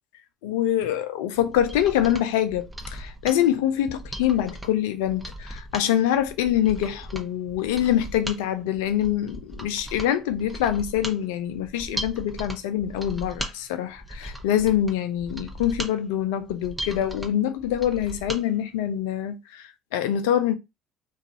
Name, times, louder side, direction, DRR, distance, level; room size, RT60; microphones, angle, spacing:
voice 1, 0.4-19.6 19.9-20.5, left 11 dB, 80° left, 0.3 m, -25 dB
Mechanisms, 1.3-18.4 18.8-18.9, right 1 dB, 10° right, 0.7 m, -38 dB
2.4 x 2.3 x 2.7 m
hypercardioid pair, 60°, 0 cm